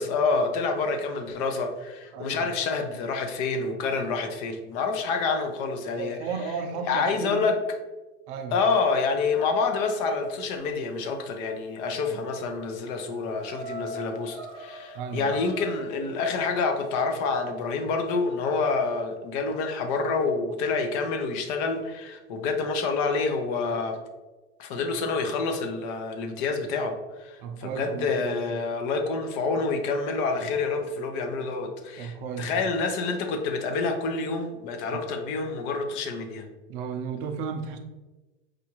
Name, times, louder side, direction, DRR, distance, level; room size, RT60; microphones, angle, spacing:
voice 1, 0.0-6.2 6.9-7.6 8.5-24.0 24.6-36.5, left 4 dB, 50° left, 5 dB, 0.6 m, -28 dB
voice 2, 2.1-2.5 6.0-7.4 8.3-8.6 12.1-12.2 14.9-15.4 27.4-28.4 30.4-30.6 32.0-32.7 34.9-35.0 36.7-37.8, right 6 dB, 50° right, 6 dB, 0.5 m, -34 dB
sound 1, 8.8-10.6 12.0-12.1 12.4-12.5 12.8-15.8, equal, 5° right, 1.0 m, -42 dB
4.7 x 2.5 x 2.9 m, 1.2 s
hypercardioid pair, 120°, 34 cm